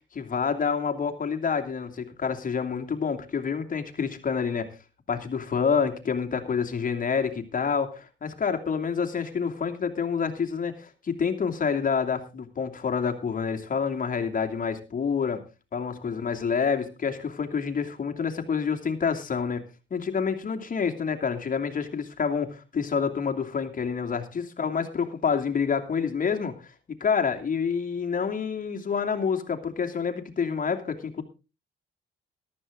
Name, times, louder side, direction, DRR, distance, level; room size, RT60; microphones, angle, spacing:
voice 1, 0.1-4.7 5.1-15.4 15.7-19.6 19.9-26.7 27.0-31.2, left 6 dB, 45° left, 4 dB, 2.7 m, -28 dB
14.0 x 12.5 x 3.8 m, 0.31 s
cardioid pair, 90°, 20 cm